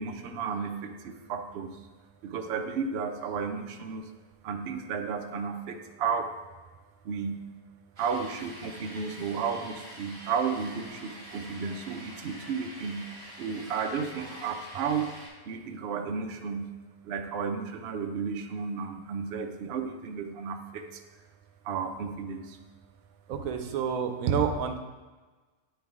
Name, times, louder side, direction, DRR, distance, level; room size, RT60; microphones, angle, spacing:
voice 1, 0.0-1.8 2.2-4.1 4.4-6.3 7.0-7.4 8.0-13.1 13.4-15.1 15.5-16.7 17.0-21.0 21.6-22.6, right 6 dB, 60° right, 5 dB, 0.7 m, -33 dB
sound 1, 8.0-15.3, equal, 30° right, 1.5 m, -46 dB
voice 2, 23.3-24.8, right 7 dB, 85° right, 6 dB, 1.0 m, -28 dB
8.6 x 3.3 x 3.5 m, 1.3 s
omnidirectional pair, 1.4 m